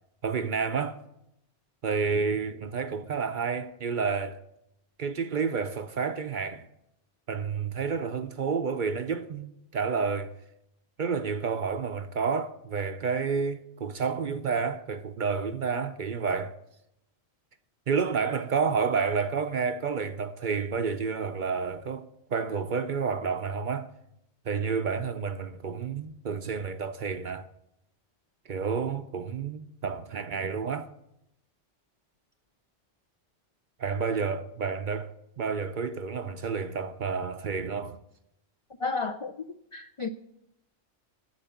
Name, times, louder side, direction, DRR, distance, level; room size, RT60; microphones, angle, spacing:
voice 1, 0.2-1.0 1.8-4.4 5.0-6.7 7.3-10.3 11.0-16.6 17.9-23.9 24.5-27.5 28.5-30.9 33.8-38.0, right 5 dB, 50° right, 0.7 m, -30 dB
voice 2, 38.8-39.3 39.7-40.1, left 4 dB, 55° left, 0.3 m, -31 dB
10.5 x 8.4 x 7.0 m
omnidirectional pair, 1.2 m